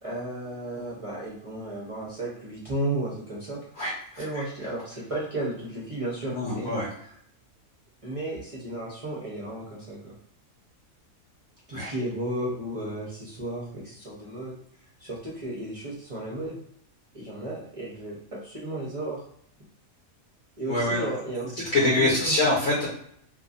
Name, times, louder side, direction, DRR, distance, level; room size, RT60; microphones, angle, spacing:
voice 1, 0.0-3.6 4.2-6.7 8.0-10.1 11.7-14.6 15.0-16.6 17.1-19.2 20.6-22.4, right 1 dB, 35° right, -6 dB, 0.5 m, -34 dB
voice 2, 3.7-4.4 6.3-6.9 11.7-11.9 20.7-21.1 21.7-22.9, left 2 dB, 75° left, -5 dB, 1.2 m, -25 dB
2.7 x 2.5 x 2.5 m, 0.67 s
omnidirectional pair, 1.5 m